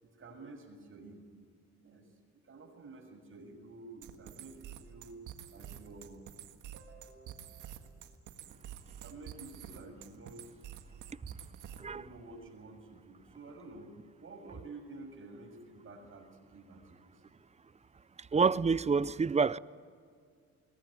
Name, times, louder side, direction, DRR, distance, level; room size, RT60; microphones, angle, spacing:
voice 1, 0.0-1.2 1.8-2.0 2.5-5.2 5.5-6.2 6.7-7.9 8.4-8.5 9.0-10.7 11.8-13.9 14.2-17.4, right 3 dB, 45° right, 6.8 m, -51 dB
sound 1, 4.0-12.0, right 10 dB, 85° right, 1.8 m, -48 dB
voice 2, 18.3-19.6, right 5 dB, 20° right, 0.5 m, -27 dB
22.5 x 19.0 x 9.9 m
cardioid pair, 90°, 30 cm